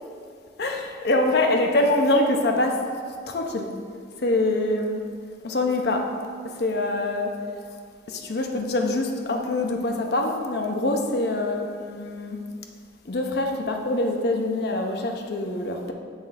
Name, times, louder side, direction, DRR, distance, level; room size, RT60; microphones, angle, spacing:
voice 1, 0.6-2.8 3.3-3.7 4.2-5.0 5.4-6.1 6.5-7.3 8.1-12.4 13.1-15.9, left 2 dB, 55° left, 2 dB, 0.6 m, -24 dB
7.3 x 3.1 x 5.6 m, 2.2 s
head